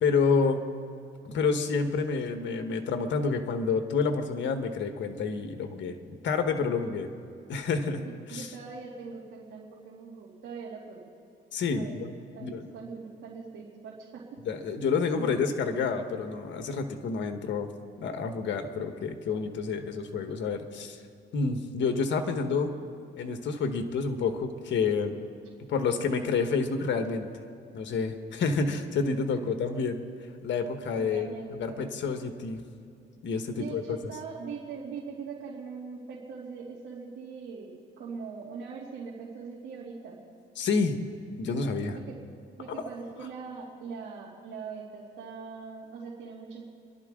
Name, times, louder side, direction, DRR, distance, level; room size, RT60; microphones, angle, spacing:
voice 1, 0.0-0.6 1.2-7.1 7.5-8.5 11.5-12.1 12.4-12.6 14.4-17.7 18.0-21.0 21.3-22.8 23.1-25.2 25.7-27.3 27.7-30.0 30.4-32.6 33.2-33.8 40.6-41.0 41.4-42.0 42.7-42.8, left 5 dB, 70° left, 6 dB, 1.4 m, -29 dB
voice 2, 8.0-11.1 11.7-14.2 15.2-15.4 31.0-31.9 33.6-40.2 42.6-46.6, right 5 dB, 80° right, -5 dB, 2.7 m, -41 dB
29.5 x 11.5 x 3.7 m, 2.5 s
cardioid pair, 90°, 20 cm